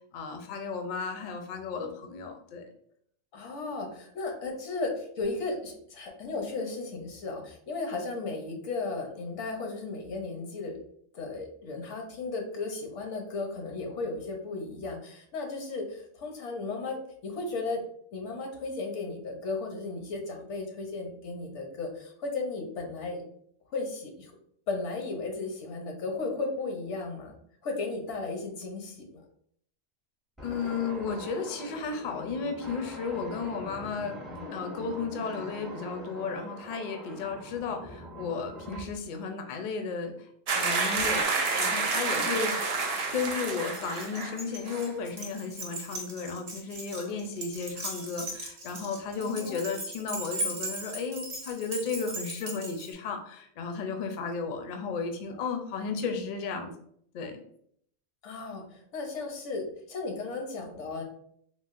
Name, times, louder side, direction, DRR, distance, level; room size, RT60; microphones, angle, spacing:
voice 1, 0.1-2.7 30.4-34.2 34.5-42.6 43.1-56.7 57.1-57.3, left 5 dB, 60° left, 5 dB, 0.5 m, -34 dB
voice 2, 3.3-10.8 11.1-17.8 18.1-23.2 23.7-24.3 24.7-27.3 27.6-29.2 42.1-42.4 49.1-49.6 58.2-61.0, left 3 dB, 85° left, 2 dB, 1.0 m, -35 dB
sound 1, 30.4-39.0 41.0-41.2, equal, ahead, 0.3 m, -43 dB
sound 2, 40.5-44.4 44.7-44.9, right 4 dB, 80° right, 0.3 m, -29 dB
Keys jangling, 43.7-52.9, right 1 dB, 40° right, 0.7 m, -38 dB
3.8 x 2.1 x 2.4 m, 0.66 s
omnidirectional pair, 1.2 m